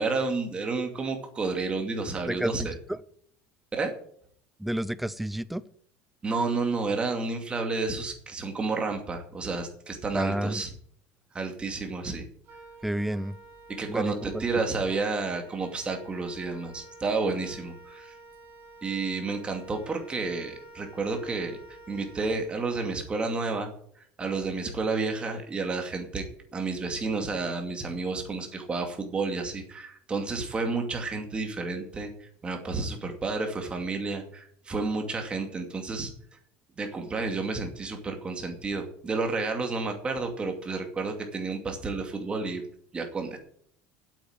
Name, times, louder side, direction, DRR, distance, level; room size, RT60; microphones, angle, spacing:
voice 1, 0.0-2.7 3.7-3.9 6.2-10.7 11.3-12.2 13.7-18.1 18.8-21.6 21.9-23.7 24.2-26.2 26.5-36.1 36.8-42.6 42.9-43.4, right 3 dB, 20° right, 2.5 m, -31 dB
voice 2, 2.3-3.0 4.6-5.6 10.1-10.6 12.8-13.4 13.9-14.4, right 1 dB, ahead, 0.5 m, -30 dB
Wind instrument woodwind instrument, 12.4-22.9, right 2 dB, 40° right, 3.1 m, -50 dB
8.6 x 8.4 x 8.7 m
cardioid pair, 140°, 5 cm